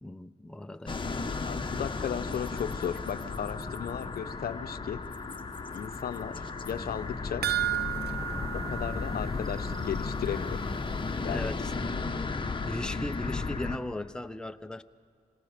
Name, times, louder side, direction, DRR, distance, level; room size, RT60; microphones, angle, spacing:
voice 1, 0.0-1.2 11.3-12.0 12.6-14.8, left 1 dB, 5° left, 10 dB, 0.7 m, -38 dB
sound 1, 0.9-13.8, left 4 dB, 30° left, 1.4 m, -34 dB
voice 2, 1.4-5.1 5.7-7.5 8.5-10.6 11.2-11.5, left 8 dB, 65° left, 10 dB, 0.8 m, -35 dB
Livestock farm animals working animals, 4.3-8.8, equal, 20° right, 3.0 m, -56 dB
sound 2, 7.4-10.0 10.3-10.4 10.8-10.9, right 12 dB, 75° right, 0.6 m, -33 dB
28.5 x 26.0 x 5.2 m, 2.4 s
cardioid pair, 60°, 17 cm